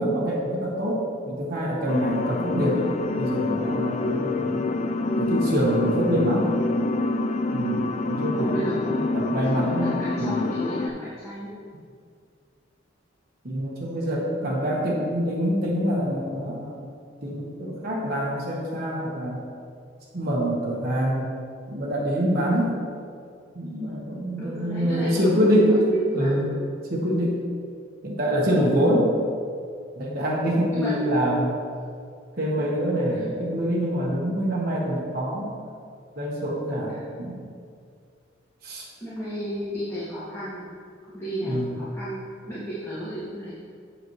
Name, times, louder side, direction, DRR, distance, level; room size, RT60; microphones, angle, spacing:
voice 1, 0.0-2.9 3.2-4.7 5.2-6.5 7.5-10.4 13.4-16.9 17.2-19.5 20.1-21.3 21.7-22.8 23.5-25.8 26.1-26.5 26.9-27.4 28.0-29.1 30.0-31.6 32.3-35.6 36.2-37.4 38.6-38.9 41.4-41.8, equal, 50° right, -4 dB, 1.3 m, -25 dB
sound 1, 1.9-10.9, left 2 dB, 40° left, 0.4 m, -26 dB
voice 2, 8.3-11.5 24.4-26.4 30.7-31.1 39.0-40.7 41.1-43.5, equal, 15° left, -12 dB, 2.0 m, -33 dB
8.1 x 7.7 x 3.2 m, 2.2 s
head